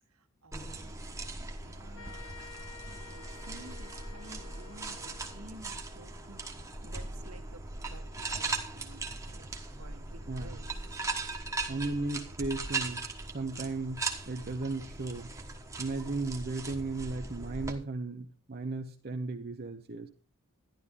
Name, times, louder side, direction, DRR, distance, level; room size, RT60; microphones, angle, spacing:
voice 1, 0.1-9.5 9.8-10.7 11.4-11.7, right 1 dB, 80° right, 5 dB, 1.6 m, -53 dB
sound 1, 0.5-17.7, right 3 dB, 15° right, 1.2 m, -39 dB
sound 2, 2.0-5.6, left 6 dB, 70° left, 1.1 m, -51 dB
voice 2, 10.3-10.6 11.7-15.3 15.8-20.1, right 3 dB, 45° right, 4 dB, 0.8 m, -36 dB
11.5 x 11.5 x 3.7 m, 0.39 s
head